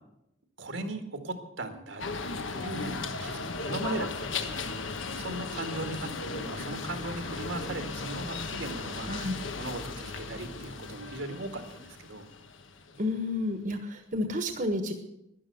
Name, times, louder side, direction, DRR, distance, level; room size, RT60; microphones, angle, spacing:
voice 1, 0.6-2.0 2.5-4.6 5.1-9.3 9.6-12.3, right 2 dB, 75° right, 6 dB, 2.0 m, -38 dB
sound 1, 2.0-13.2, left 4 dB, 80° left, 1.3 m, -36 dB
voice 2, 13.0-14.9, left 1 dB, 40° right, 6 dB, 1.3 m, -30 dB
12.5 x 10.5 x 7.8 m, 0.83 s
head